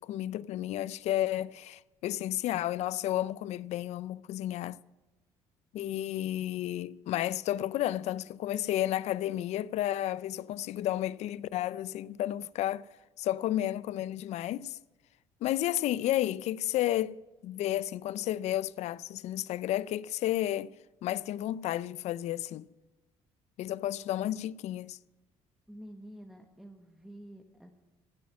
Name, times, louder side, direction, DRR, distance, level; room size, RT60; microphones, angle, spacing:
voice 1, 0.0-4.8 5.7-12.9 13.2-14.8 15.4-20.7 21.0-22.7 23.6-25.0, left 13 dB, 70° left, 0.5 m, -32 dB
voice 2, 25.7-27.7, equal, 5° right, 1.3 m, -49 dB
16.0 x 8.6 x 9.5 m
cardioid pair, 90°, 12 cm